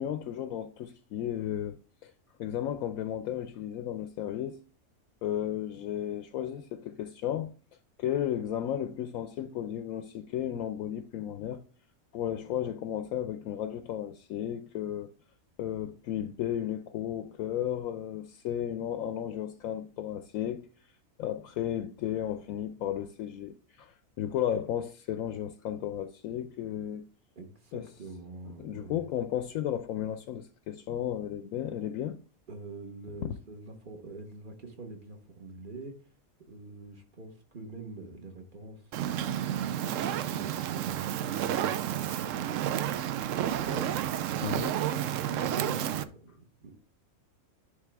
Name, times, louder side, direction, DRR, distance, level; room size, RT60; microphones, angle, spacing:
voice 1, 0.0-2.1 2.4-4.6 5.2-7.5 8.0-11.6 12.1-15.1 15.6-20.6 21.2-27.0 27.7-27.9 28.6-32.2 44.4-44.7, left 10 dB, 75° left, 1.0 m, -34 dB
voice 2, 27.3-29.0 32.5-36.0 36.4-39.3 39.8-44.3 44.8-46.8, right 3 dB, 35° right, 1.3 m, -45 dB
Fire, 38.9-46.0, right 11 dB, 70° right, 0.9 m, -31 dB
11.0 x 3.7 x 3.4 m
omnidirectional pair, 1.5 m